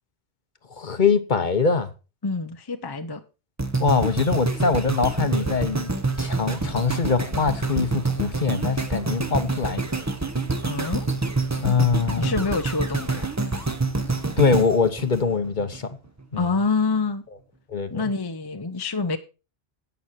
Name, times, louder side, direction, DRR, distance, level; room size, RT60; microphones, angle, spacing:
voice 1, 0.8-1.9 3.8-5.9 6.2-9.8 11.6-12.3 14.4-15.9 16.3-16.5 17.7-17.9, left 5 dB, 45° left, 1.1 m, -23 dB
voice 2, 2.2-3.2 10.6-11.1 12.2-13.2 16.4-17.2 17.9-19.2, left 4 dB, 25° left, 0.7 m, -26 dB
sound 1, 3.6-15.8 16.3-16.4, right 3 dB, 15° right, 0.8 m, -27 dB
11.0 x 8.1 x 4.3 m
omnidirectional pair, 1.1 m